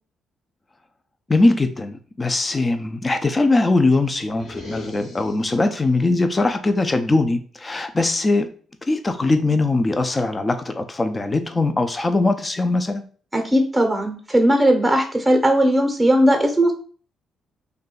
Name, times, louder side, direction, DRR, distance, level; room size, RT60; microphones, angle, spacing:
voice 1, 1.3-8.5 8.9-13.0, left 2 dB, 25° left, 8 dB, 0.4 m, -21 dB
sound 1, 4.3-5.9, left 2 dB, 70° left, 1.0 m, -39 dB
voice 2, 13.3-16.7, right 1 dB, 5° right, 4 dB, 0.8 m, -18 dB
2.6 x 2.2 x 3.8 m, 0.42 s
cardioid pair, 90°, 0 cm